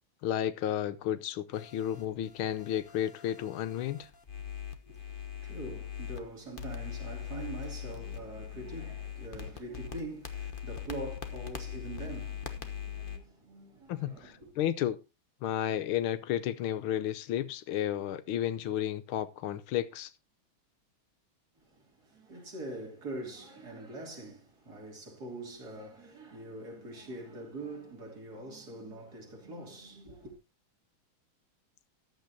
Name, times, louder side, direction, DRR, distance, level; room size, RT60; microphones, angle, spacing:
voice 1, 0.2-4.1 13.9-15.0 15.4-20.1, left 11 dB, 80° left, 1.6 m, -32 dB
sound 1, 1.5-6.2 6.6-13.2, left 9 dB, 35° left, 0.9 m, -41 dB
voice 2, 4.8-14.5 21.6-30.4, right 2 dB, 50° right, 3.5 m, -44 dB
14.5 x 11.0 x 2.8 m
omnidirectional pair, 2.3 m